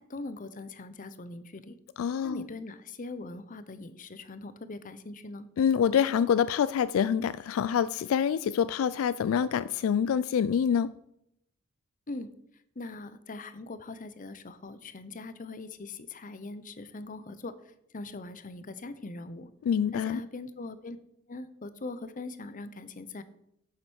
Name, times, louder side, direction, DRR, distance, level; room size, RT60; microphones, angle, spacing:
voice 1, 0.0-1.8 2.2-5.5 12.1-12.3 12.8-17.5 17.9-19.5 19.9-21.0 21.3-23.2, left 2 dB, 40° left, 0.7 m, -41 dB
voice 2, 2.0-2.4 5.6-10.9 19.7-20.2, left 8 dB, 80° left, 0.3 m, -26 dB
7.7 x 7.4 x 6.2 m
head